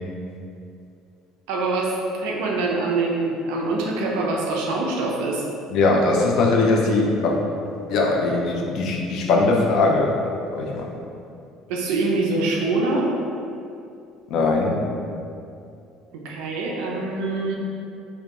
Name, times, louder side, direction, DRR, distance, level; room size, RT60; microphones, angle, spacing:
voice 1, 1.5-5.4 11.7-13.1 16.1-17.5, right 3 dB, 85° right, -2 dB, 0.4 m, -24 dB
voice 2, 5.7-7.4 7.9-10.2 10.5-10.9 14.3-14.8, left 3 dB, 50° left, 0 dB, 0.3 m, -20 dB
2.3 x 2.1 x 2.8 m, 2.6 s
cardioid pair, 170°, 0 cm